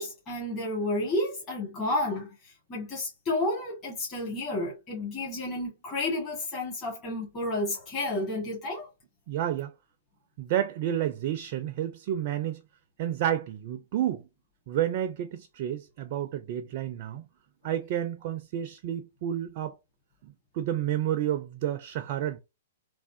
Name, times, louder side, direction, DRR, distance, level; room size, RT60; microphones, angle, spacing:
voice 1, 0.0-2.3 2.7-8.9, left 2 dB, 25° left, 1.5 m, -31 dB
voice 2, 9.3-9.7 10.4-12.6 13.0-14.3 14.7-17.2 17.6-19.7 20.5-22.4, right 11 dB, 45° right, 0.4 m, -30 dB
3.4 x 2.1 x 2.5 m
figure-of-eight pair, 115°, 0 cm